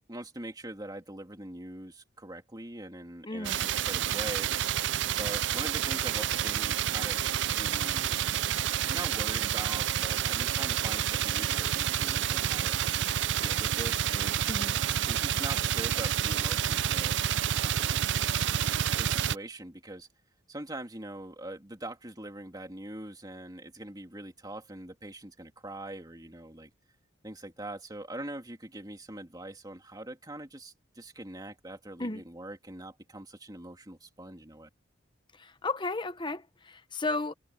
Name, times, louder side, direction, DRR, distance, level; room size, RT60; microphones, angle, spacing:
voice 1, 0.0-4.5 5.2-7.2 7.5-8.2 8.9-12.8 13.4-14.6 15.0-17.2 17.5-18.1 18.8-20.1 20.5-26.7 27.2-34.7, right 1 dB, 20° right, 2.8 m, -42 dB
voice 2, 3.2-3.6 14.5-14.8 32.0-32.2 35.3-37.3, left 3 dB, 25° left, 1.1 m, -34 dB
sound 1, 3.4-19.3, right 10 dB, 65° right, 0.4 m, -29 dB
head